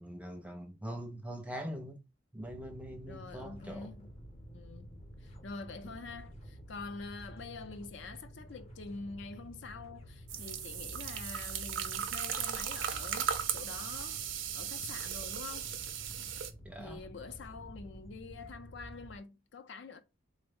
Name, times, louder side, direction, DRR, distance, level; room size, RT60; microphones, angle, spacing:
voice 1, 0.0-2.0 2.3-3.9 16.6-17.0, equal, 5° right, 0.5 m, -43 dB
sound 1, 2.4-19.2, equal, 35° left, 0.8 m, -50 dB
voice 2, 3.1-4.1 4.5-14.2 14.5-15.7 16.8-20.0, left 4 dB, 70° left, 0.5 m, -46 dB
sound 2, 10.3-16.5, right 8 dB, 80° right, 0.5 m, -37 dB
3.4 x 2.0 x 3.6 m
head